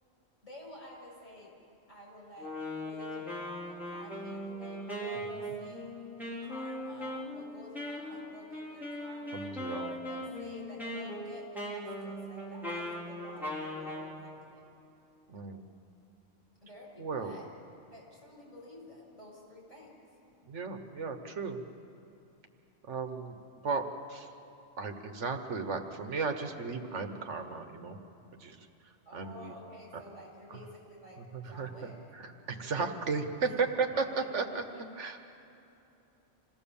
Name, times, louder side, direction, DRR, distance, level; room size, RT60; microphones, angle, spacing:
voice 1, 0.4-1.5 1.9-5.9 6.4-14.6 16.6-17.5 17.9-19.9 29.0-32.0 33.4-33.5 33.9-34.0 34.5-34.8, left 1 dB, 40° left, -3 dB, 6.7 m, -50 dB
Wind instrument woodwind instrument, 2.4-14.1, equal, ahead, 3.3 m, -39 dB
voice 2, 9.3-9.9 15.3-15.7 17.0-17.3 20.5-21.6 22.8-23.4 23.6-24.3 24.8-28.0 28.4-28.7 29.1-29.5 30.5-30.6 31.3-34.6 35.0-35.2, right 4 dB, 80° right, 6 dB, 1.5 m, -35 dB
26.5 x 16.5 x 7.1 m, 2.8 s
omnidirectional pair, 1.2 m